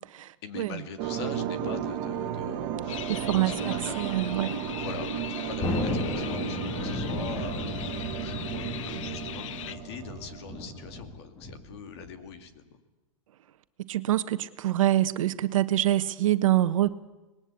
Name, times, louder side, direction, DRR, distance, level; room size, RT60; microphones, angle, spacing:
voice 1, 0.4-4.2 4.7-12.8, left 6 dB, 50° left, 2.7 m, -43 dB
sound 1, 1.0-11.0, right 8 dB, 35° right, 2.0 m, -34 dB
sound 2, 2.9-9.8, left 11 dB, 65° left, 0.8 m, -40 dB
voice 2, 3.1-4.6 13.9-16.9, right 14 dB, 70° right, 1.3 m, -25 dB
Thunder, 5.6-12.5, left 2 dB, 15° left, 2.6 m, -35 dB
26.0 x 20.0 x 8.5 m
supercardioid pair, 165°, 17 cm